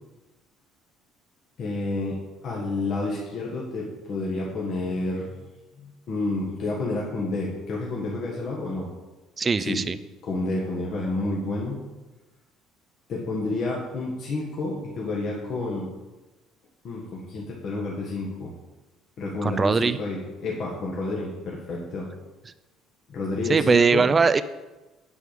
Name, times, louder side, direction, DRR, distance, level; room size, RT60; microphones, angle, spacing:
voice 1, 1.6-2.2 2.4-5.5 5.8-8.9 9.6-9.8 10.2-11.8 13.1-15.9 16.8-18.5 19.2-22.1 23.1-24.0, left 2 dB, 40° left, -3 dB, 1.5 m, -30 dB
voice 2, 9.4-10.0 19.4-20.0 23.5-24.4, right 5 dB, 20° right, 13 dB, 0.3 m, -20 dB
8.0 x 7.7 x 5.0 m, 1.1 s
cardioid pair, 175°, 0 cm